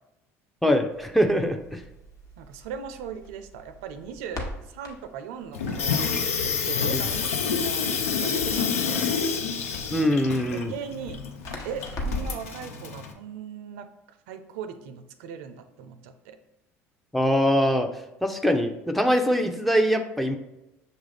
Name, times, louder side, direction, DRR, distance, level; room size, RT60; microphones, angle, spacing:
voice 1, 0.6-1.8 6.9-7.0 9.9-10.7 17.1-17.9 18.2-20.4, equal, ahead, 5 dB, 0.5 m, -23 dB
Crackle, 0.9-12.5, left 1 dB, 50° left, 1.0 m, -40 dB
voice 2, 2.4-6.1 6.4-7.9 8.2-9.1 10.5-11.2 11.6-16.4, right 7 dB, 75° right, 9 dB, 0.4 m, -39 dB
Water tap faucet / Sink (filling or washing), 5.5-13.1, left 6 dB, 85° left, 0.5 m, -28 dB
6.3 x 2.4 x 3.3 m, 0.92 s
hypercardioid pair, 70°, 7 cm